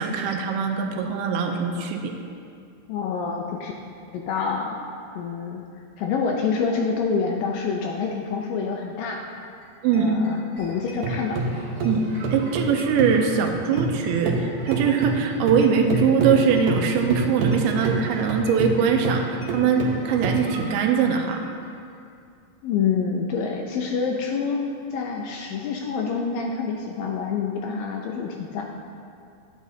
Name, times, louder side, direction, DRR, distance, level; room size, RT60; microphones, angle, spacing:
voice 1, 0.0-2.1 9.8-10.2 11.8-21.5, right 6 dB, 85° right, 4 dB, 2.6 m, -22 dB
voice 2, 2.9-3.7 4.1-4.8 5.2-5.6 6.0-9.2 9.9-11.4 22.6-24.6 24.9-28.6, left 5 dB, 80° left, 1 dB, 2.1 m, -27 dB
sound 1, 9.3-9.4 9.6-9.7 9.9-11.6 11.8-21.1 21.3-21.4 21.6-21.7 21.9-22.0, left 2 dB, 45° left, 1.8 m, -47 dB
sound 2, 10.6-14.0 14.3-20.9, right 3 dB, 65° right, 2.3 m, -27 dB
12.0 x 9.2 x 2.8 m, 2.4 s
omnidirectional pair, 4.5 m